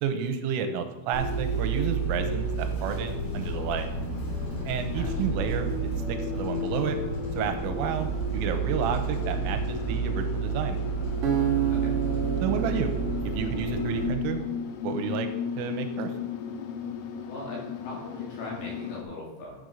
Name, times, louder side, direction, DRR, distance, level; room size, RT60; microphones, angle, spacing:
voice 1, 0.0-3.9 4.7-5.7 6.1-7.0 7.4-10.8 12.4-12.9 13.3-14.4 14.8-15.3 15.6-16.1, right 7 dB, 90° right, 7 dB, 3.3 m, -31 dB
Bus, 1.1-14.0, right 3 dB, 35° left, 2.7 m, -30 dB
sound 1, 2.5-19.0, left 8 dB, 85° left, 3.3 m, -38 dB
voice 2, 4.9-5.3 11.7-12.0 17.3-19.6, left 1 dB, 65° left, -4 dB, 4.4 m, -40 dB
Acoustic guitar, 11.2-14.4, right 9 dB, 70° right, 2.1 m, -30 dB
10.5 x 6.5 x 5.3 m, 1.0 s
omnidirectional pair, 5.8 m